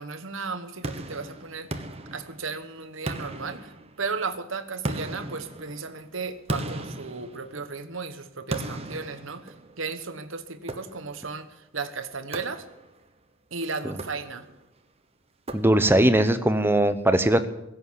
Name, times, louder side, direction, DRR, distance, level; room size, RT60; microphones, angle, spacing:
voice 1, 0.0-1.8 2.1-3.7 4.0-12.6 13.5-14.4, right 4 dB, 60° right, 10 dB, 1.2 m, -35 dB
sound 1, 0.8-2.6 3.1-4.2 4.8-7.9 8.5-9.9 10.7-11.3 12.3-13.0 13.9-14.6 15.5-16.1, right 1 dB, 30° right, 1.1 m, -37 dB
voice 2, 15.5-17.5, right 1 dB, 10° right, 11 dB, 0.8 m, -20 dB
16.5 x 8.1 x 9.7 m, 0.90 s
head